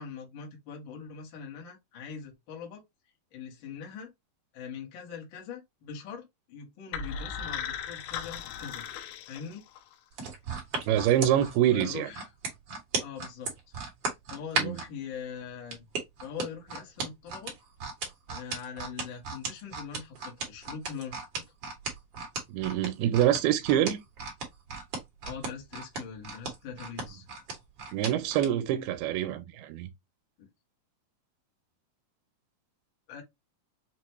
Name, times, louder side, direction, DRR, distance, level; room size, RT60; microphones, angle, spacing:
voice 1, 0.0-2.8 3.3-4.1 4.5-8.9 9.2-9.6 11.7-12.3 13.0-13.6 14.3-15.9 16.2-17.6 18.3-21.4 25.2-27.3 30.4-30.5 33.1-33.2, left 7 dB, 65° left, 1.2 m, -42 dB
sound 1, 6.9-10.0, left 7 dB, 85° left, 2.6 m, -37 dB
sound 2, 10.1-14.9 15.7-28.5 29.0-29.1, right 4 dB, 50° right, 1.9 m, -35 dB
voice 2, 10.9-12.1 14.6-14.8 22.5-24.0 27.9-29.9, right 11 dB, 85° right, 2.5 m, -25 dB
6.1 x 2.3 x 2.9 m
omnidirectional pair, 4.3 m